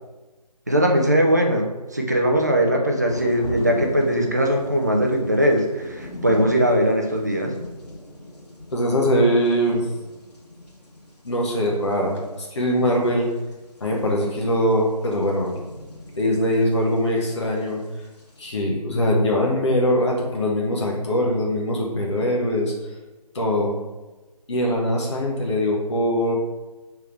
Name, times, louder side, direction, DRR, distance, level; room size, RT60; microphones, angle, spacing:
voice 1, 0.7-7.5, equal, 25° right, 2 dB, 0.4 m, -20 dB
sound 1, 3.1-18.6, left 1 dB, 80° left, 1.3 m, -40 dB
voice 2, 8.7-9.9 11.2-13.3 13.8-15.6 16.2-17.8 18.4-22.7 23.3-23.7 24.5-26.3, equal, 45° left, -2 dB, 0.8 m, -22 dB
3.4 x 3.3 x 4.6 m, 1.1 s
figure-of-eight pair, 160°, 20 cm